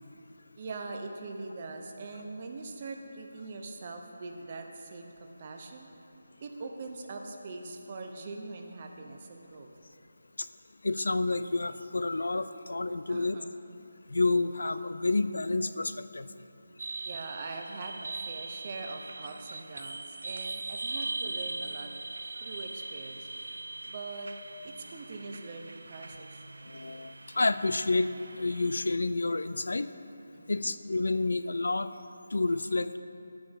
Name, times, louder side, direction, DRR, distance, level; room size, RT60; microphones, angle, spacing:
voice 1, 0.6-5.9 6.4-9.7 13.1-13.6 17.0-21.9 22.4-23.3 23.8-24.3 24.6-26.4 30.3-30.7, right 3 dB, 30° right, 3 dB, 0.6 m, -42 dB
voice 2, 10.8-13.4 14.1-16.3 26.7-28.1 28.4-29.9 30.5-31.9 32.3-33.0, left 3 dB, 80° left, 12 dB, 0.4 m, -29 dB
sound 1, 16.8-29.0, right 3 dB, 75° right, 0.6 m, -41 dB
12.0 x 8.8 x 3.5 m, 2.7 s
figure-of-eight pair, 175°, 0 cm